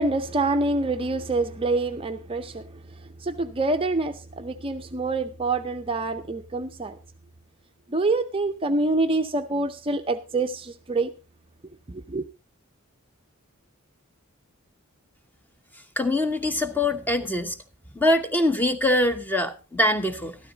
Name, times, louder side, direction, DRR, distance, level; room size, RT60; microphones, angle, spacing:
voice 1, 0.0-2.6 3.2-7.0 7.9-11.1 11.9-12.2, right 2 dB, 25° right, 7 dB, 0.6 m, -26 dB
voice 2, 16.0-17.6 17.9-20.4, left 1 dB, 10° left, 9 dB, 1.0 m, -23 dB
13.0 x 12.5 x 3.9 m, 0.30 s
head